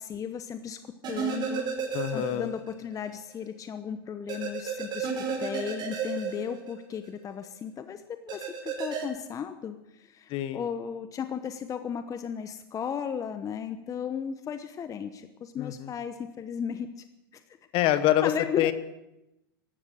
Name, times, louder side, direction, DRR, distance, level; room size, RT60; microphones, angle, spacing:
voice 1, 0.0-1.7 2.1-5.1 5.4-17.0 18.2-18.7, left 7 dB, 25° left, 10 dB, 0.9 m, -35 dB
sound 1, 1.0-2.7 3.0-3.1 4.3-7.1 8.3-9.0, right 6 dB, 35° right, 5.7 m, -32 dB
voice 2, 1.9-2.5 10.3-10.6 15.6-15.9 17.7-18.3 18.6-18.7, left 13 dB, 45° left, 12 dB, 1.3 m, -25 dB
15.5 x 12.5 x 6.5 m, 0.92 s
hypercardioid pair, 100°, 12 cm